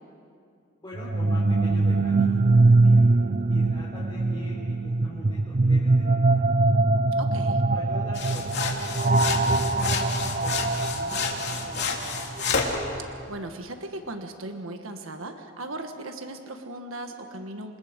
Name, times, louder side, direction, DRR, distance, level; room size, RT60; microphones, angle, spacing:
voice 1, 0.8-3.0 3.5-6.5 7.7-12.2 12.5-12.6, equal, 20° left, -8 dB, 4.8 m, -43 dB
sound 1, 1.0-12.8, right 2 dB, 40° right, 0.6 m, -22 dB
voice 2, 7.2-7.6 13.3-17.8, right 2 dB, 70° right, 5 dB, 1.5 m, -37 dB
sound 2, 8.1-12.8, left 5 dB, 55° left, 2.9 m, -30 dB
28.5 x 26.0 x 5.3 m, 2.4 s
head